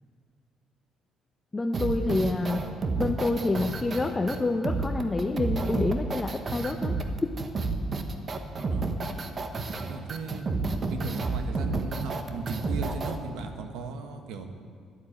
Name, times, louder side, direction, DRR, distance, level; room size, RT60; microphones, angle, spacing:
voice 1, 1.5-2.6 3.0-7.0, left 2 dB, 20° left, 4 dB, 0.6 m, -27 dB
sound 1, 1.7-13.2, right 3 dB, 35° right, 1.0 m, -30 dB
voice 2, 9.9-10.5 10.9-14.5, right 4 dB, 90° right, 6 dB, 1.3 m, -37 dB
11.5 x 7.9 x 8.5 m, 2.2 s
cardioid pair, 105°, 0 cm